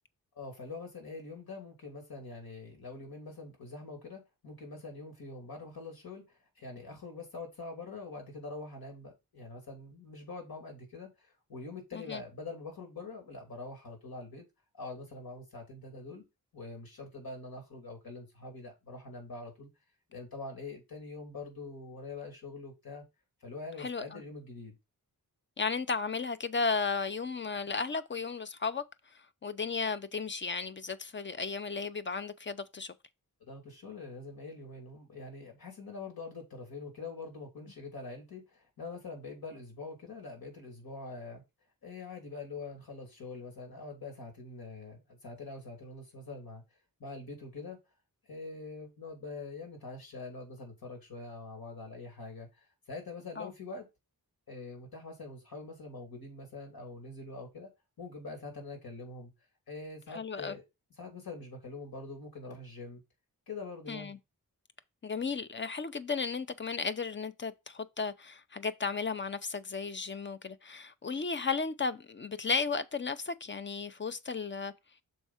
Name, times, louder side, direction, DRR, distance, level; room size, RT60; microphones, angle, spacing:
voice 1, 0.4-14.4 14.7-16.2 16.5-19.7 20.1-23.0 23.4-24.7 33.5-41.4 41.8-46.6 47.0-47.8 48.2-53.9 54.5-57.7 58.0-59.3 59.7-60.6 61.0-63.0 63.5-64.2, left 3 dB, 75° left, 3.0 m, -44 dB
voice 2, 23.8-24.2 25.6-28.8 29.4-32.9 53.4-53.5 60.1-60.6 63.9-64.2 65.0-74.7, left 4 dB, 35° left, 0.5 m, -34 dB
6.4 x 4.5 x 4.2 m
wide cardioid pair, 145°, 36 cm